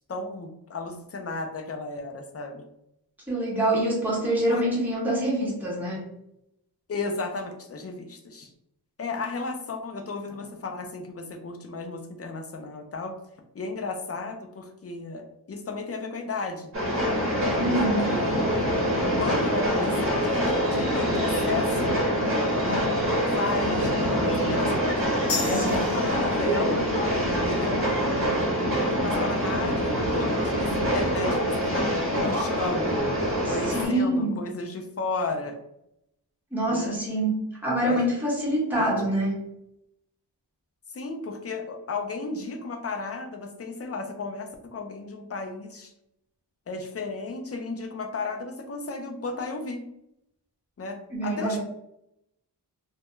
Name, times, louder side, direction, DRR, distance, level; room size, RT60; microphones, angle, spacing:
voice 1, 0.1-2.6 4.5-4.6 6.9-8.5 9.0-13.2 13.5-16.7 17.6-18.8 19.2-22.0 22.7-22.8 23.2-25.0 25.4-26.9 27.5-27.9 28.8-31.9 32.2-33.1 33.5-35.6 36.7-37.0 37.9-38.0 38.8-39.0 40.9-45.9 46.7-49.8 50.8-51.6, left 3 dB, 35° left, 5 dB, 0.4 m, -34 dB
voice 2, 3.3-6.0 17.5-18.2 18.4-18.6 33.4-34.3 36.5-37.4 37.6-39.4 51.1-51.6, right 1 dB, 5° right, -6 dB, 1.0 m, -25 dB
Train, 16.7-33.9, equal, 30° right, 0.9 m, -25 dB
sound 1, 25.3-32.4, left 3 dB, 85° left, 0.7 m, -40 dB
2.2 x 2.2 x 3.0 m, 0.80 s
wide cardioid pair, 95°, 42 cm